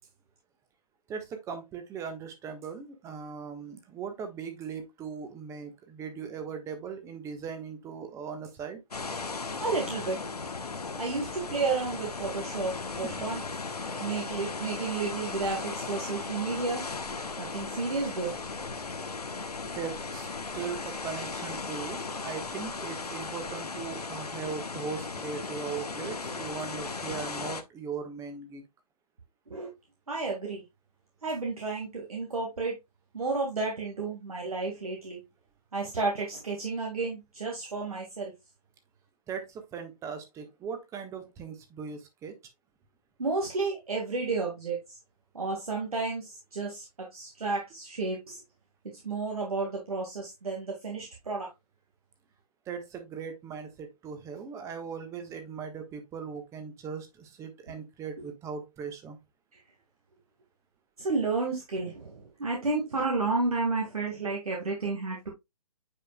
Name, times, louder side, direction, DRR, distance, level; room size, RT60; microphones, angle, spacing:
voice 1, 1.1-8.8 13.0-13.3 19.7-28.6 39.3-42.4 52.7-59.2, right 6 dB, 15° right, 1.3 m, -39 dB
sound 1, 8.9-27.6, left 4 dB, 85° left, 1.1 m, -37 dB
voice 2, 9.6-10.2 11.0-13.4 14.0-16.8 17.4-18.3 29.5-29.7 30.1-30.6 31.2-32.7 33.1-35.2 35.7-38.3 43.2-44.8 45.3-48.4 49.0-51.5 61.0-65.3, right 3 dB, 70° right, 1.9 m, -31 dB
8.9 x 5.0 x 2.3 m
figure-of-eight pair, 130°, 19 cm